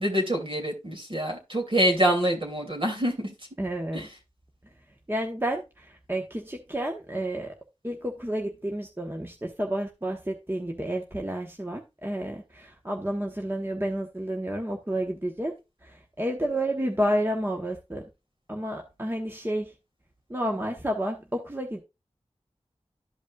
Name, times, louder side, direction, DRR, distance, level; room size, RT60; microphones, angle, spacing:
voice 1, 0.0-3.3 3.9-4.1, right 1 dB, 50° right, 2 dB, 2.6 m, -25 dB
voice 2, 3.6-4.1 5.1-7.5 7.8-15.5 15.8-18.0 18.5-19.8 20.3-21.8, right 1 dB, 20° right, 1 dB, 1.1 m, -30 dB
12.5 x 5.2 x 2.4 m, 0.25 s
wide cardioid pair, 50°, 12 cm